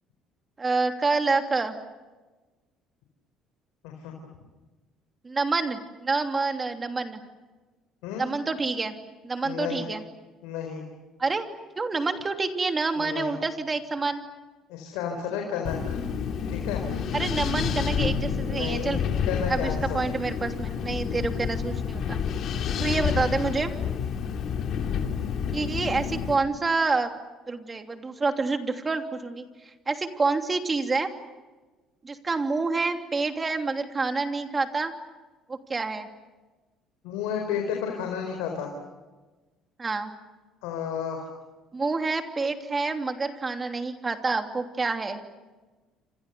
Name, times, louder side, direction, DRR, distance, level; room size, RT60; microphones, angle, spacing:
voice 1, 0.6-1.8 5.2-7.2 8.2-8.9 9.2-10.0 11.2-11.5 11.8-14.2 17.1-19.0 19.5-22.2 22.8-23.7 25.5-27.1 27.5-29.4 29.9-31.1 32.0-34.9 35.5-36.1 39.8-40.1 41.7-45.2, right 3 dB, 30° right, 5 dB, 2.9 m, -27 dB
voice 2, 9.4-9.8 10.4-10.8 13.0-13.3 14.7-16.0 16.5-16.8 18.5-19.0 19.3-19.8 37.0-38.7 40.6-41.2, left 7 dB, 80° left, 2 dB, 4.1 m, -32 dB
Wind, 15.6-26.4, left 7 dB, 60° left, 2.8 m, -29 dB
29.5 x 26.0 x 7.0 m, 1.2 s
hypercardioid pair, 65°, 0 cm